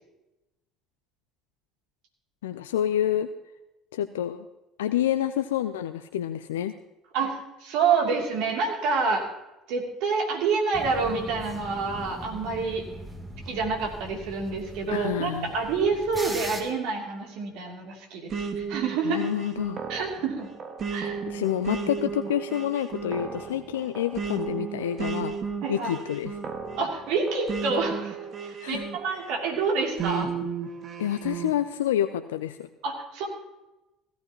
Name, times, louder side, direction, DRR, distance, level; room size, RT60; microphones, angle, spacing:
voice 1, 2.4-3.3 3.9-4.4 4.8-6.7 14.9-15.5 19.0-19.8 21.3-25.4 25.7-26.3 28.6-28.8 31.0-32.7, left 11 dB, 80° left, 9 dB, 0.5 m, -28 dB
voice 2, 7.1-9.2 9.7-12.8 13.4-19.2 19.9-20.5 20.9-21.2 25.6-25.9 26.8-30.3 32.8-33.3, right 4 dB, 65° right, 1 dB, 2.8 m, -28 dB
sound 1, 10.7-16.6, right 1 dB, 15° right, 2.9 m, -40 dB
sound 2, 18.3-29.4 30.0-31.5, right 6 dB, 45° right, 1.6 m, -34 dB
16.5 x 14.5 x 2.9 m, 0.98 s
hypercardioid pair, 65°, 0 cm